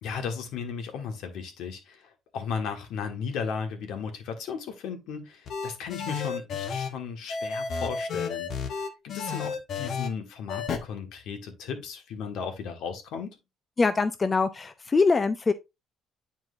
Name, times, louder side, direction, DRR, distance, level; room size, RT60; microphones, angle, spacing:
voice 1, 0.0-13.4, left 6 dB, 70° left, 1.4 m, -35 dB
sound 1, 5.5-6.9 7.3-10.1 10.5-10.8, left 5 dB, 45° left, 0.9 m, -32 dB
voice 2, 13.8-15.5, left 4 dB, 20° left, 0.4 m, -23 dB
9.6 x 4.5 x 2.5 m
cardioid pair, 175°, 0 cm